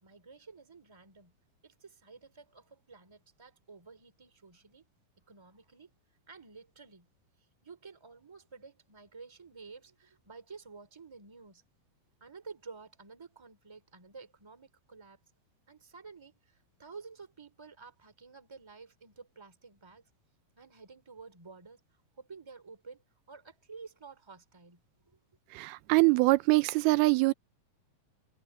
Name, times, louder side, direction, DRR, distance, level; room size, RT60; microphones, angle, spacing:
voice 1, 0.0-1.3 1.6-4.8 5.3-5.9 6.3-7.1 7.6-11.6 12.2-15.2 15.7-20.0 20.6-21.8 22.2-23.0 23.3-24.8 25.1-25.2, right 4 dB, 10° right, 2.0 m, -51 dB
voice 2, 25.5-27.3, right 24 dB, 85° right, 2.5 m, -24 dB
omnidirectional pair, 4.3 m